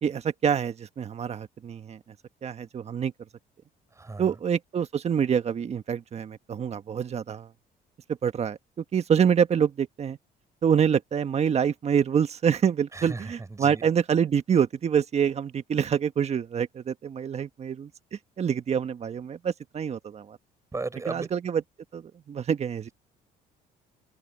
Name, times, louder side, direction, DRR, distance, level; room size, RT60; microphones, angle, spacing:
voice 1, 0.0-2.0 2.4-3.1 4.2-7.5 8.2-10.2 10.6-17.9 18.4-20.4 21.1-21.6 21.9-22.0 22.3-22.9, right 7 dB, 40° right, 1.4 m, -26 dB
voice 2, 3.9-4.4 12.9-13.9 20.7-21.3, right 3 dB, 15° right, 6.5 m, -36 dB
cardioid pair, 110°, 17 cm